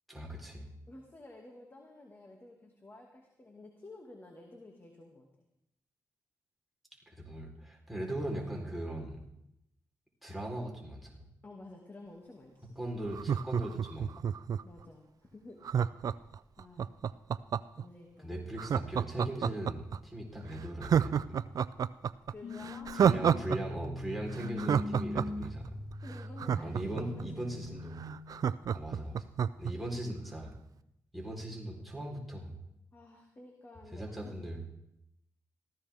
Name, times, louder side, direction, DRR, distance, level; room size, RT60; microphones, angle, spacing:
voice 1, 0.1-0.7 7.1-9.2 10.2-11.1 12.8-14.1 18.2-21.4 22.9-25.8 26.6-28.0 28.7-29.3 29.6-30.5 31.1-32.5 33.9-34.8, right 1 dB, ahead, -2 dB, 3.9 m, -39 dB
voice 2, 0.9-5.3 8.0-8.2 11.4-12.8 14.6-15.6 16.0-16.1 16.6-17.0 17.8-18.3 22.3-23.1 26.0-27.8 32.9-34.4, left 2 dB, 35° left, 1 dB, 2.2 m, -52 dB
Laughter, 13.1-14.8 15.6-17.8 18.6-20.0 20.3-20.4 20.8-23.6 23.8-23.9 24.3-27.2 27.7-27.8 28.0-29.7 30.1-30.2, right 8 dB, 65° right, 0.4 m, -29 dB
sound 1, 22.4-28.4, left 2 dB, 90° left, 2.1 m, -42 dB
18.5 x 15.0 x 3.6 m, 0.82 s
cardioid pair, 65°, 7 cm